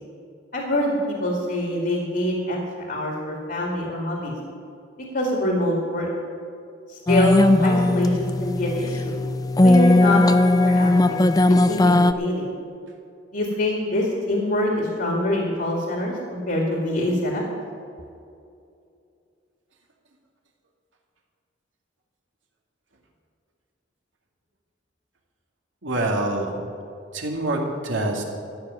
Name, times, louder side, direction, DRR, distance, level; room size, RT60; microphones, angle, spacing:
voice 1, 0.5-1.0 1.2-4.3 5.1-6.1 6.9-9.1 9.6-12.5 13.3-17.4, left 1 dB, 50° left, -1 dB, 2.1 m, -25 dB
sound 1, 7.1-12.1, left 2 dB, 20° left, 0.4 m, -18 dB
voice 2, 25.8-26.6 27.1-28.2, right 2 dB, 90° right, 0 dB, 2.4 m, -25 dB
15.0 x 6.5 x 9.5 m, 2.5 s
head